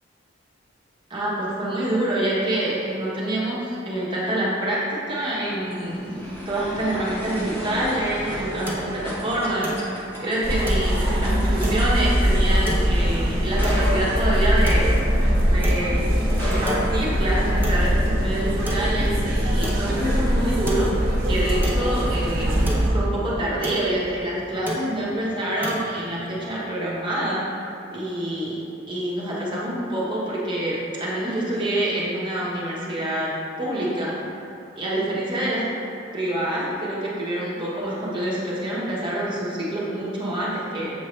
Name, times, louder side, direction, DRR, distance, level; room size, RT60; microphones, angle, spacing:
voice 1, 1.1-9.9 10.2-14.9 15.4-16.1 16.4-22.5 22.9-27.4 27.9-28.6 28.9-33.3 33.6-34.1 34.8-35.7 36.1-40.9, right 1 dB, 25° right, -7 dB, 1.3 m, -26 dB
sound 1, 5.3-15.6 16.2-17.7, equal, 10° left, 1.5 m, -35 dB
sound 2, 7.9-26.6, right 1 dB, 10° right, 0.8 m, -36 dB
sound 3, 10.4-22.9, equal, 50° right, 1.1 m, -22 dB
7.4 x 4.6 x 3.3 m, 2.8 s
head